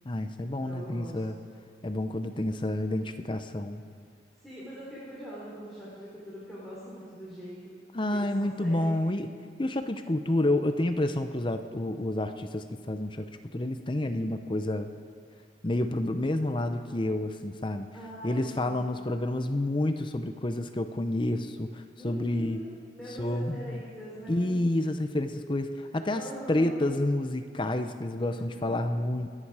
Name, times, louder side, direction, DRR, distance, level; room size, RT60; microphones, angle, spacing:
voice 1, 0.0-1.3 1.8-3.8 7.9-9.3 9.6-14.9 15.6-17.9 18.2-22.6 23.2-23.8 24.3-29.3, left 1 dB, 25° left, 8 dB, 0.6 m, -29 dB
voice 2, 0.7-1.4 4.4-7.8 8.1-8.9 17.9-19.0 22.0-24.5 26.1-26.9 28.4-28.9, equal, ahead, -8 dB, 3.6 m, -43 dB
29.0 x 10.0 x 4.8 m, 2.1 s
head